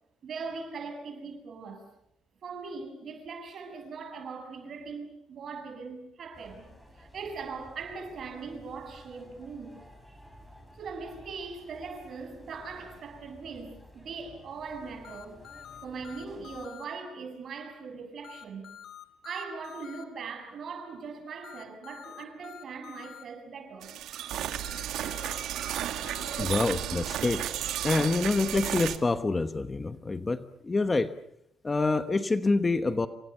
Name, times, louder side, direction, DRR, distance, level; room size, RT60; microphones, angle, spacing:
voice 1, 0.2-1.9 2.4-6.7 7.0-9.7 10.8-15.4 15.8-18.7 19.2-23.9, right 4 dB, 45° right, 7.1 m, -40 dB
sound 1, 6.3-16.7, equal, ahead, 6.3 m, -53 dB
sound 2, 15.0-16.8 18.2-20.0 21.4-23.2 24.6-26.4, left 10 dB, 60° left, 2.4 m, -47 dB
sound 3, 23.8-29.0, right 11 dB, 80° right, 2.2 m, -33 dB
voice 2, 26.4-27.5 27.8-31.1 31.6-33.1, left 3 dB, 20° left, 1.1 m, -27 dB
29.0 x 25.5 x 7.0 m
cardioid pair, 160°, 0 cm